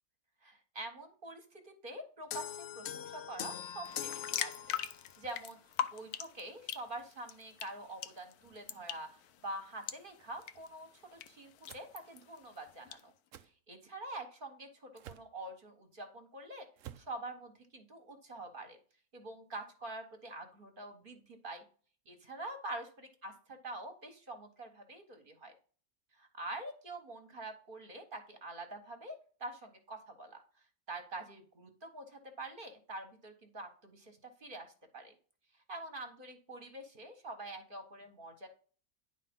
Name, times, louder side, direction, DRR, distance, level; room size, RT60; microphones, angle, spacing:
voice 1, 0.4-4.7 5.2-5.6 5.9-9.1 9.4-13.1 13.7-16.7 17.0-18.8 19.1-21.6 22.1-25.5 26.2-30.4 30.9-35.1 35.7-38.5, right 2 dB, 35° right, 6 dB, 1.4 m, -46 dB
sound 1, 2.3-5.2, left 9 dB, 60° left, 0.7 m, -42 dB
sound 2, 3.8-13.0, left 10 dB, 80° left, 1.2 m, -43 dB
sound 3, 11.7-11.9 13.3-13.5 15.0-15.3 16.8-17.1, right 12 dB, 65° right, 0.9 m, -50 dB
10.0 x 3.7 x 5.3 m, 0.42 s
omnidirectional pair, 1.6 m